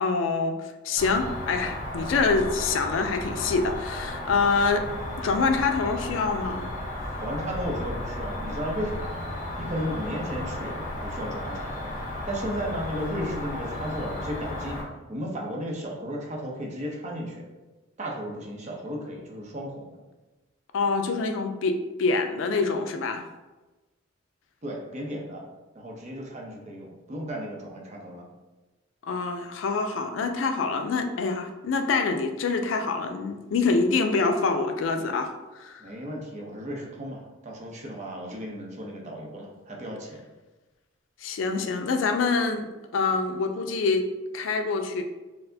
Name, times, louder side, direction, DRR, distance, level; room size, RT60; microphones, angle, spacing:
voice 1, 0.0-4.8 5.2-6.7 20.7-23.3 29.1-35.8 41.2-42.7 42.9-45.0, left 4 dB, 70° left, 6 dB, 0.3 m, -26 dB
Cricket, 1.0-14.8, left 1 dB, 40° left, 0.7 m, -34 dB
voice 2, 7.2-9.2 9.6-10.8 11.0-11.9 12.2-14.8 15.1-17.5 18.0-19.9 24.6-25.4 25.7-28.2 35.8-40.2, equal, 35° right, -1 dB, 0.6 m, -34 dB
4.1 x 2.0 x 2.7 m, 1.1 s
head